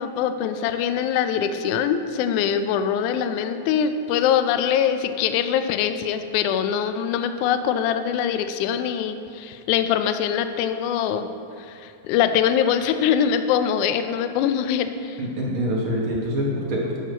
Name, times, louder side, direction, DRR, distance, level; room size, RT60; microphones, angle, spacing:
voice 1, 0.0-11.3 11.6-15.2, left 8 dB, 80° left, 9 dB, 1.9 m, -23 dB
voice 2, 15.2-17.0, equal, 55° right, -3 dB, 1.6 m, -25 dB
11.5 x 4.6 x 6.0 m, 2.4 s
omnidirectional pair, 3.8 m